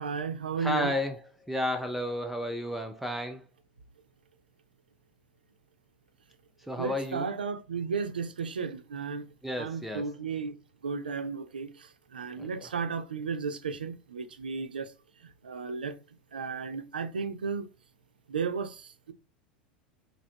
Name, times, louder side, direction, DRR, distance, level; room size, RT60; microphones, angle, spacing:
voice 1, 0.0-0.9 6.8-9.3 9.6-10.5 10.8-14.9 15.4-15.9 16.3-17.7 18.3-19.1, right 5 dB, 75° right, 0.4 m, -34 dB
voice 2, 0.6-3.4 6.6-7.3 9.4-10.1 12.4-12.7, left 1 dB, 5° right, 0.4 m, -32 dB
3.2 x 2.5 x 2.7 m
figure-of-eight pair, 80°, 5 cm